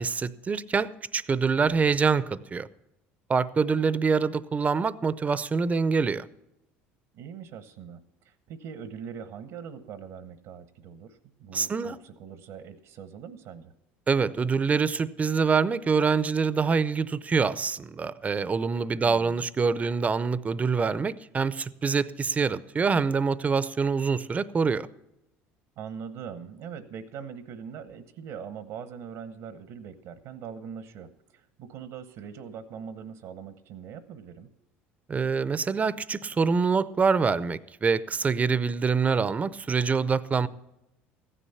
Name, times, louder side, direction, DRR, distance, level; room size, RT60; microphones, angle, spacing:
voice 1, 0.0-2.7 3.3-6.3 11.5-12.0 14.1-24.9 35.1-40.5, right 5 dB, 25° right, 0.6 m, -25 dB
voice 2, 7.1-8.0 8.2-13.7 19.0-19.4 25.8-34.5, right 7 dB, 70° right, 1.0 m, -42 dB
15.0 x 10.0 x 5.6 m
supercardioid pair, 85°, 6 cm